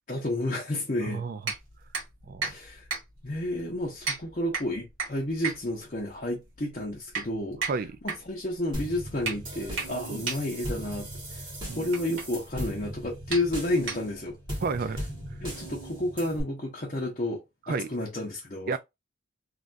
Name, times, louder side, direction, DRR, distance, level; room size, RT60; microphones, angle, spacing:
voice 1, 0.1-1.2 2.4-2.8 3.2-7.6 8.0-11.5 11.8-14.4 15.4-18.8, left 1 dB, 35° left, 0.7 m, -31 dB
voice 2, 1.1-1.5 2.3-2.5 7.7-8.0 10.1-10.2 11.7-11.9 14.6-15.0 17.7-17.9 18.7-18.8, right 4 dB, 45° right, 0.3 m, -31 dB
sound 1, 1.4-14.4, right 4 dB, 65° right, 1.6 m, -37 dB
sound 2, 8.7-16.4, right 1 dB, 20° right, 1.4 m, -38 dB
3.3 x 2.4 x 2.5 m
head